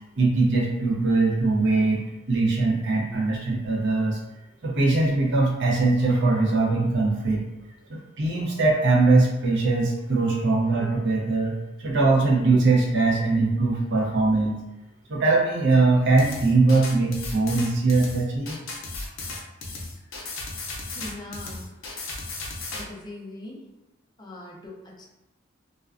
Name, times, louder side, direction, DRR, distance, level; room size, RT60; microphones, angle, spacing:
voice 1, 0.2-4.2 4.6-7.4 7.9-11.5 11.8-14.6 15.1-18.6, right 3 dB, 60° right, -3 dB, 0.6 m, -21 dB
sound 1, 16.2-22.8, left 3 dB, 80° left, 0.5 m, -35 dB
voice 2, 20.9-21.8 22.7-23.6 24.2-25.0, left 2 dB, 20° left, -3 dB, 0.5 m, -40 dB
2.4 x 2.2 x 2.4 m, 1.0 s
head